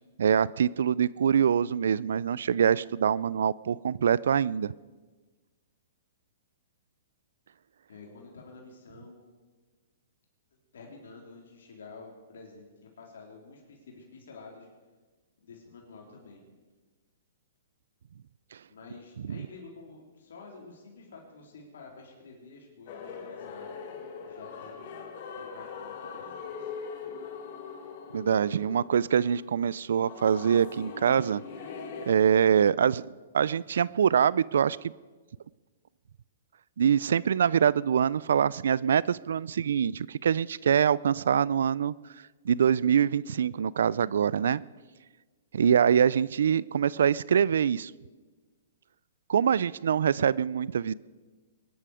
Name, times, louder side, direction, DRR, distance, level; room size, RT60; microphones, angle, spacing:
voice 1, 0.2-4.7 19.3-19.4 28.1-31.4 32.0-33.1 33.3-34.9 36.8-41.9 42.5-44.6 45.5-47.9 49.3-50.9, right 8 dB, 75° right, 22 dB, 0.4 m, -24 dB
voice 2, 7.9-9.2 10.7-14.7 15.4-16.4 18.7-23.7 24.2-26.4, left 4 dB, 75° left, -1 dB, 3.7 m, -49 dB
sound 1, 22.9-32.1, left 6 dB, 50° left, 2.2 m, -41 dB
22.0 x 11.0 x 5.0 m, 1.3 s
hypercardioid pair, 135°, 0 cm